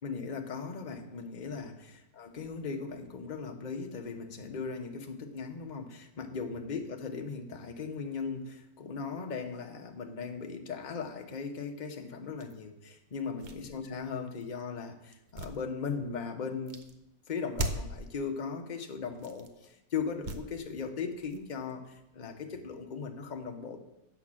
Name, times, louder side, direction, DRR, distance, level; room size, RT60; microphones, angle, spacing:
voice 1, 0.0-16.8 17.3-23.8, left 5 dB, 35° left, 3 dB, 0.8 m, -38 dB
sound 1, 12.4-12.5 13.2-14.6 15.1-16.2 16.7-16.9 17.5-18.1 19.1-19.6 20.2-20.7 21.1-22.3, right 2 dB, 50° right, 0.5 m, -39 dB
8.4 x 6.1 x 7.4 m, 0.91 s
omnidirectional pair, 2.0 m